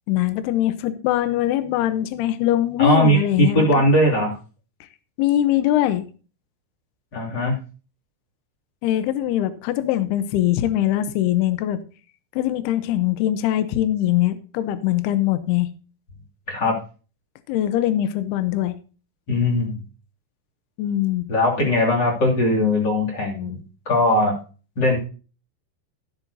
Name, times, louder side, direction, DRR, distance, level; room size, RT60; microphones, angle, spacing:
voice 1, 0.1-3.8 5.2-6.1 8.8-11.8 12.4-15.7 17.5-18.8 20.8-21.3, left 13 dB, 75° left, 12 dB, 2.5 m, -22 dB
voice 2, 2.8-4.3 7.1-7.5 16.5-16.7 19.3-19.8 21.3-23.6 23.9-24.4 24.8-25.0, left 1 dB, 30° left, -2 dB, 2.3 m, -19 dB
13.0 x 11.0 x 2.7 m, 0.36 s
omnidirectional pair, 5.4 m